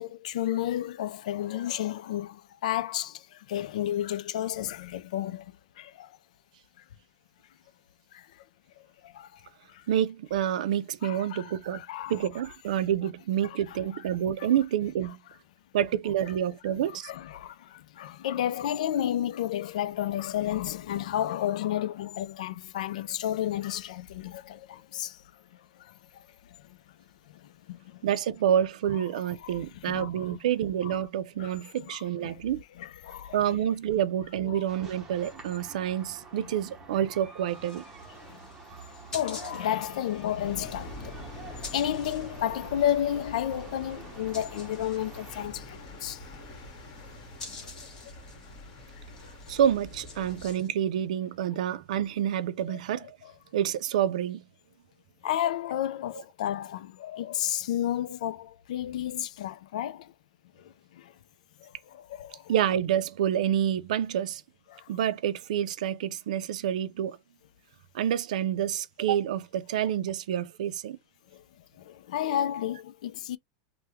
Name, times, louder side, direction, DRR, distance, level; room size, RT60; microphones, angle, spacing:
voice 1, 0.0-6.1 8.1-8.3 9.0-9.4 9.7-9.8 11.0-12.1 17.0-25.2 25.8-25.9 27.4-28.0 29.4-29.6 29.8-30.4 31.4-31.5 31.9-32.0 32.2-32.4 32.8-33.4 38.3-38.4 39.1-41.2 41.7-46.2 47.6-47.7 49.2-49.3 50.2-50.4 55.2-60.1 60.9-61.1 61.6-62.5 64.7-64.9 71.3-71.4 71.8-73.4, left 11 dB, 80° left, 0.4 m, -32 dB
voice 2, 9.9-11.8 12.1-15.2 15.7-17.1 28.0-32.6 33.3-37.8 49.5-53.1 53.5-54.4 62.5-64.4 64.9-67.2 67.9-71.0, right 10 dB, 80° right, 0.4 m, -28 dB
sound 1, 34.7-45.4, right 4 dB, 10° right, 0.8 m, -47 dB
sound 2, 37.5-50.7, left 4 dB, 15° left, 1.1 m, -49 dB
sound 3, 40.4-50.5, left 2 dB, 35° left, 1.6 m, -45 dB
3.4 x 2.2 x 2.9 m
supercardioid pair, 170°, 4 cm